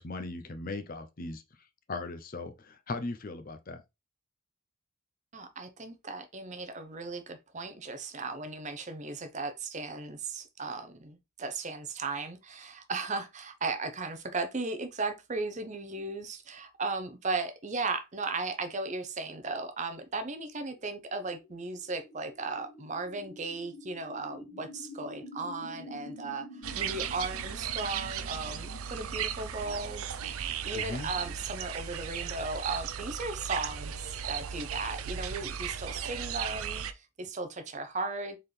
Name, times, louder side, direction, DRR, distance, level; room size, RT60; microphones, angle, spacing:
voice 1, 0.0-1.4 1.9-3.8 30.7-31.1, left 3 dB, 40° left, 0.5 m, -38 dB
voice 2, 5.3-38.4, right 3 dB, 35° right, 0.6 m, -36 dB
sound 1, 20.6-32.3, left 1 dB, 75° left, 1.3 m, -49 dB
sound 2, 26.6-36.9, right 8 dB, 80° right, 0.5 m, -36 dB
4.3 x 3.8 x 3.2 m
head